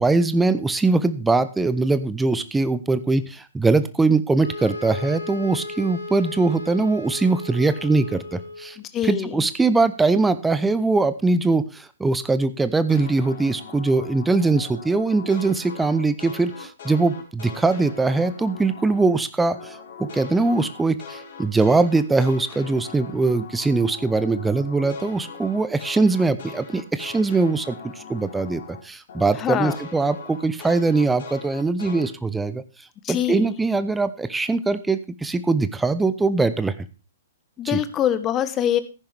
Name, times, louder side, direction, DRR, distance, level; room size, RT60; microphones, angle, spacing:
voice 1, 0.0-8.8 9.0-32.6 33.1-36.7 37.6-37.8, right 3 dB, 5° right, 12 dB, 0.7 m, -22 dB
sound 1, 4.4-8.8, left 3 dB, 90° right, 6.9 m, -35 dB
voice 2, 8.8-9.4 29.4-29.8 33.0-33.5 37.6-38.8, left 10 dB, 20° left, 12 dB, 1.2 m, -24 dB
sound 2, 12.9-19.2 19.5-28.8 29.1-32.1, left 5 dB, 50° left, 4.6 m, -40 dB
14.5 x 10.5 x 3.5 m, 0.31 s
figure-of-eight pair, 115°, 0 cm